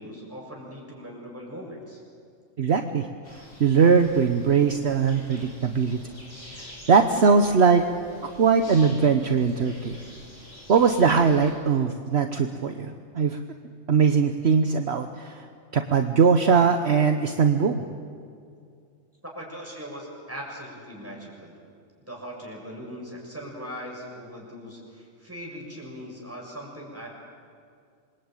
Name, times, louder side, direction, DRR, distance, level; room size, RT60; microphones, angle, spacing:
voice 1, 0.0-2.0 19.2-21.6 22.1-27.1, equal, 10° right, -2 dB, 7.0 m, -40 dB
voice 2, 2.6-3.1 3.6-6.0 6.5-7.9 8.4-10.0 10.7-13.4 13.9-15.5 15.7-17.8, right 5 dB, 60° right, 6 dB, 1.3 m, -21 dB
sound 1, 3.2-11.5, left 1 dB, 80° left, 8.1 m, -47 dB
27.0 x 22.0 x 9.1 m, 2.3 s
omnidirectional pair, 1.3 m